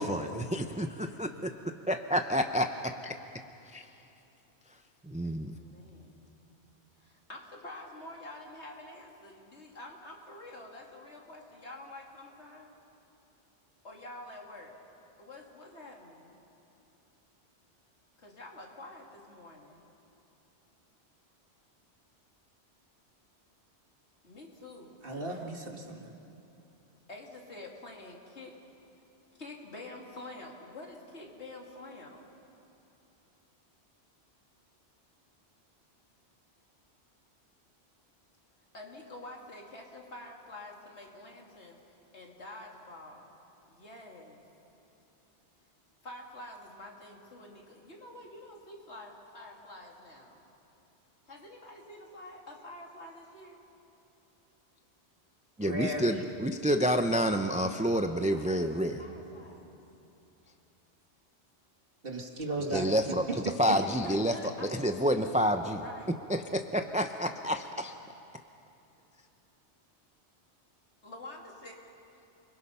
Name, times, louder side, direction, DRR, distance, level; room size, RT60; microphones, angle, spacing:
voice 1, 0.0-1.5 1.9-2.7 3.7-3.8 5.1-5.6 55.6-59.0 62.7-63.2 63.6-64.3 64.8-65.8 66.3-67.9, equal, 10° right, 6 dB, 0.6 m, -28 dB
voice 2, 5.6-6.3 7.0-12.7 13.8-14.8 15.2-16.4 18.2-19.9 24.2-25.6 27.1-28.6 29.4-32.3 38.7-43.3 43.7-44.4 46.0-50.4 51.3-53.6 58.3-59.8 63.7-64.7 65.1-66.2 71.0-71.8, left 2 dB, 75° left, 0 dB, 2.8 m, -47 dB
voice 3, 25.0-26.1 55.6-56.2 62.0-63.0 63.3-63.4, right 1 dB, 55° right, 1 dB, 2.2 m, -35 dB
29.0 x 21.5 x 5.7 m, 2.8 s
omnidirectional pair, 1.1 m